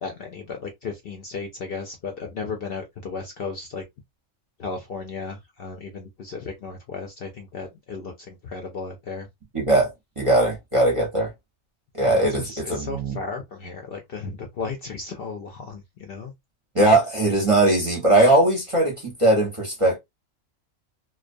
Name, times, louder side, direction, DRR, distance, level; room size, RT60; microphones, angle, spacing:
voice 1, 0.0-3.8 4.6-9.3 12.0-16.3, left 4 dB, 60° left, 0.6 m, -35 dB
voice 2, 9.5-9.9 10.2-11.3 11.9-13.2 16.7-20.0, right 1 dB, 30° right, 0.6 m, -20 dB
2.3 x 2.2 x 2.5 m
omnidirectional pair, 1.4 m